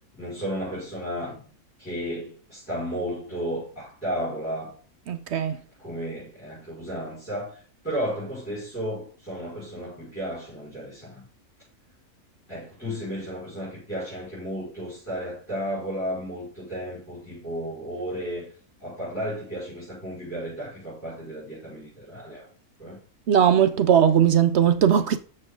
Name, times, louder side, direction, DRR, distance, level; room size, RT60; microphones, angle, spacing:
voice 1, 0.1-1.4 1.8-4.7 5.8-11.2 12.5-18.5 18.8-22.5 22.8-23.0, equal, 10° left, 5.1 m, -33 dB
voice 2, 5.1-5.6 23.3-25.2, right 9 dB, 65° right, 0.7 m, -19 dB
13.5 x 4.6 x 3.7 m
omnidirectional pair, 1.6 m